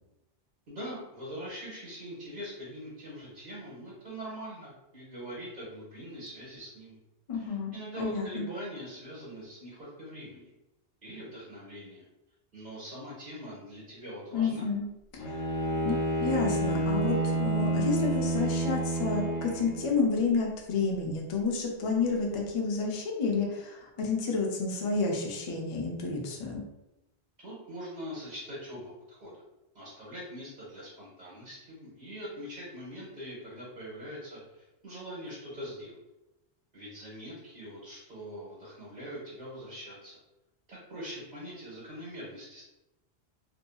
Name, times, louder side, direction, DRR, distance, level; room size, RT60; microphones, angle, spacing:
voice 1, 0.7-7.0 7.3-10.5 11.0-12.0 12.5-14.7 27.4-29.3 29.7-35.9 36.7-40.2 40.7-42.6, equal, 40° right, -7 dB, 0.9 m, -42 dB
voice 2, 7.3-8.4 14.3-14.8 15.2-15.4 15.8-26.6, left 4 dB, 45° left, 0 dB, 0.4 m, -30 dB
Bowed string instrument, 15.2-20.0, right 1 dB, 80° left, 0.9 m, -29 dB
2.6 x 2.6 x 2.3 m, 0.94 s
omnidirectional pair, 1.1 m